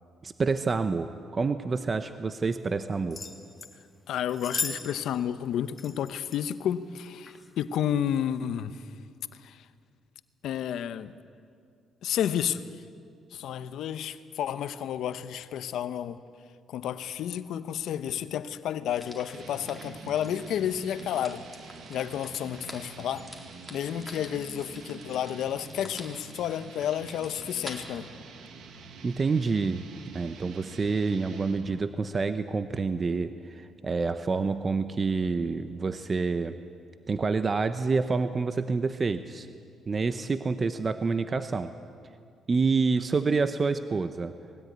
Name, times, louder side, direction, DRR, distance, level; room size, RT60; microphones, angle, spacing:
voice 1, 0.2-3.2 29.0-29.8 30.1-36.5 37.1-39.5 39.9-41.7 42.5-44.3, right 4 dB, 35° right, 0.8 m, -28 dB
sound 1, 3.1-3.7 4.3-4.8 5.1-5.2 5.8-6.4 7.2-7.5 8.1-8.2, left 4 dB, 25° left, 2.4 m, -35 dB
voice 2, 4.1-8.8 9.4-9.6 10.4-11.1 12.0-12.6 13.3-16.2 16.7-21.5 21.9-23.3 23.7-28.1, left 10 dB, 80° left, 0.9 m, -31 dB
sound 2, 18.9-27.8, equal, 5° right, 4.3 m, -48 dB
sound 3, 19.3-31.9, right 5 dB, 75° right, 1.9 m, -46 dB
20.0 x 17.5 x 9.4 m
cardioid pair, 90°, 0 cm